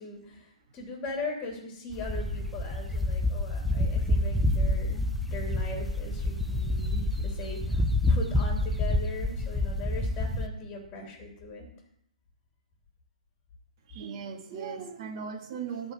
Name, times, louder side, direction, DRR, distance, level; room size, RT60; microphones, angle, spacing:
voice 1, 0.0-11.7, left 3 dB, 20° left, 0 dB, 3.2 m, -39 dB
sound 1, 1.9-10.5, left 1 dB, ahead, 0.7 m, -28 dB
voice 2, 13.9-15.9, right 6 dB, 35° right, 2 dB, 1.9 m, -38 dB
14.0 x 4.8 x 9.1 m, 0.76 s
figure-of-eight pair, 130°, 4 cm